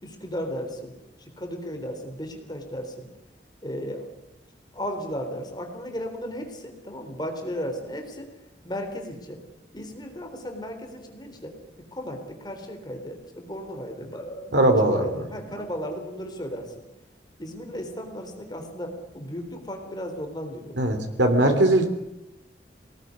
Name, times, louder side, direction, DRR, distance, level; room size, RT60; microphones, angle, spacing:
voice 1, 0.0-3.1 3.6-4.0 4.7-8.3 8.6-9.4 9.7-11.6 11.9-16.7 17.4-20.8 21.5-21.6, equal, 25° left, 4 dB, 3.7 m, -35 dB
voice 2, 14.5-15.1 20.8-21.8, right 1 dB, 90° right, 6 dB, 3.4 m, -20 dB
23.5 x 19.0 x 9.6 m, 0.91 s
head